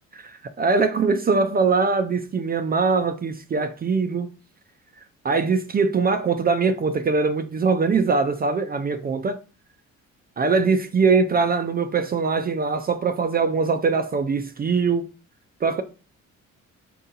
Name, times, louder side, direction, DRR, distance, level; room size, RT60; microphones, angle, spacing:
voice 1, 0.1-4.3 5.2-9.4 10.4-15.1 15.6-15.8, right 4 dB, 30° right, 0.4 m, -22 dB
4.6 x 2.7 x 3.9 m
cardioid pair, 90°, 30 cm